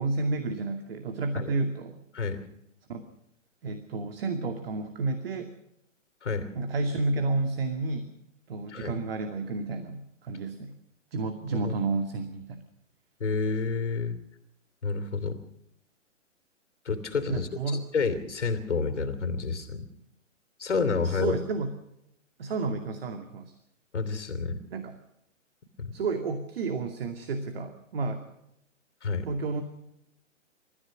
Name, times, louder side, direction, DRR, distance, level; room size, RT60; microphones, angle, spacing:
voice 1, 0.0-2.0 2.9-3.0 3.6-5.5 6.5-8.1 8.5-10.7 11.1-12.6 17.3-17.8 21.0-21.7 22.4-23.5 24.7-25.0 25.9-28.2 29.3-29.6, right 3 dB, 50° right, 6 dB, 2.5 m, -31 dB
voice 2, 2.1-2.5 6.2-6.5 8.7-8.9 11.6-11.7 13.2-14.2 14.8-15.4 16.8-19.9 20.6-21.4 23.9-24.6 25.8-25.9 29.0-29.3, left 4 dB, 65° left, 8 dB, 3.0 m, -29 dB
29.5 x 15.0 x 6.3 m, 0.82 s
figure-of-eight pair, 125°, 37 cm